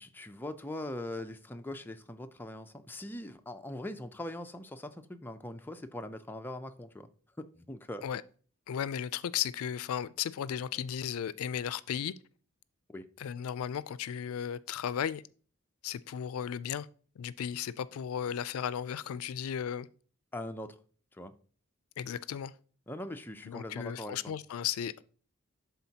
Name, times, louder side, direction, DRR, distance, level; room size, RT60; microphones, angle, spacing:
voice 1, 0.0-7.1 7.4-8.0 12.9-13.1 20.3-20.8 21.1-21.3 22.9-24.3, left 1 dB, 10° left, 0.4 m, -41 dB
voice 2, 8.7-12.1 13.2-15.2 15.8-16.9 17.2-19.9 22.0-22.5 23.4-25.0, left 9 dB, 80° left, 0.3 m, -35 dB
11.5 x 3.8 x 2.8 m
head